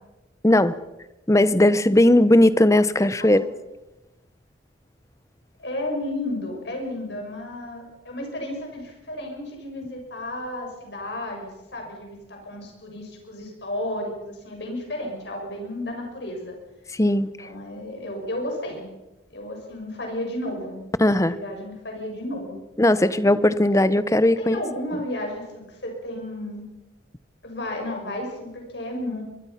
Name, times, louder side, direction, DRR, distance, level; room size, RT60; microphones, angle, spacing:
voice 1, 0.4-0.8 1.3-3.5 17.0-17.3 21.0-21.4 22.8-24.6, left 1 dB, 15° left, 15 dB, 0.7 m, -18 dB
voice 2, 5.6-16.6 17.4-18.9 19.3-20.8 21.2-22.6 24.4-26.7 27.4-29.2, left 1 dB, 60° left, 2 dB, 6.4 m, -33 dB
23.5 x 22.0 x 5.8 m, 1.0 s
head